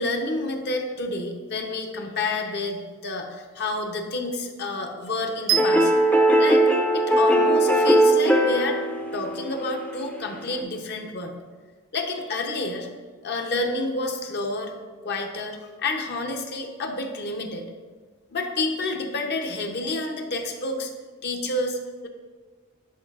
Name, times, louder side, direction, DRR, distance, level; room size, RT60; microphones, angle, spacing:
voice 1, 0.0-5.9 6.4-8.8 9.1-11.4 11.9-12.9 13.2-14.7 15.0-17.7 18.3-20.9 21.2-21.8, left 2 dB, 50° left, 4 dB, 0.7 m, -29 dB
sound 1, 5.5-10.6, right 1 dB, 5° left, 0.4 m, -20 dB
sound 2, 5.5-7.6, right 10 dB, 75° right, 0.4 m, -29 dB
10.5 x 4.6 x 2.4 m, 1.4 s
head